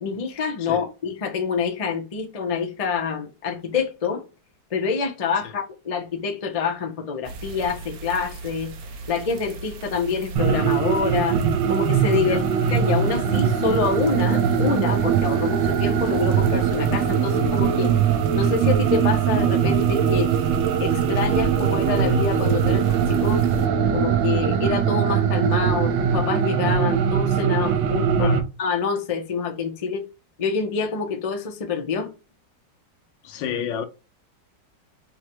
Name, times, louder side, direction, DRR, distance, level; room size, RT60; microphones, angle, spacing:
voice 1, 0.0-4.2 4.7-8.7 9.1-11.4 11.7-12.4 12.7-17.9 18.3-20.3 20.8-23.5 23.9-28.3 28.6-30.1 30.4-32.1, left 5 dB, 60° left, 0.3 m, -26 dB
sound 1, 7.2-23.7, right 3 dB, 65° right, 1.2 m, -37 dB
sound 2, 10.4-28.4, right 7 dB, 90° right, 1.4 m, -21 dB
voice 2, 33.2-33.8, left 8 dB, 85° left, 1.4 m, -30 dB
5.3 x 2.2 x 3.0 m
omnidirectional pair, 2.0 m